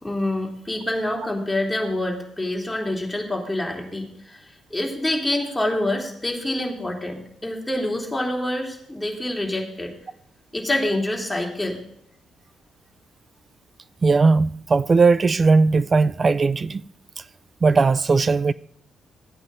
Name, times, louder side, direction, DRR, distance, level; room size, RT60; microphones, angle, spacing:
voice 1, 0.0-4.4 4.7-9.9 10.5-11.8, left 1 dB, 10° left, 2.9 m, -26 dB
voice 2, 14.0-16.8 17.6-18.5, right 4 dB, 35° right, 0.4 m, -18 dB
13.5 x 8.8 x 4.0 m
cardioid pair, 90°, 0 cm